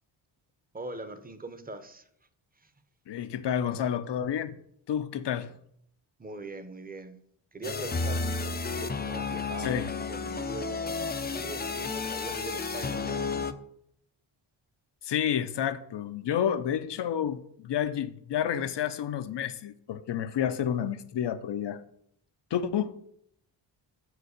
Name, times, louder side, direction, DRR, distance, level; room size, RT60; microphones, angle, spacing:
voice 1, 0.7-2.1 2.6-2.7 6.2-7.2 7.5-10.8 11.3-13.6, right 2 dB, 20° right, 11 dB, 0.9 m, -41 dB
voice 2, 3.1-4.5 4.9-5.5 9.6-9.9 15.0-21.8 22.5-23.0, left 9 dB, 60° left, 13 dB, 0.8 m, -30 dB
sound 1, 7.6-13.5, left 4 dB, 20° left, 0.6 m, -32 dB
6.4 x 4.8 x 6.5 m, 0.71 s
cardioid pair, 70°, 48 cm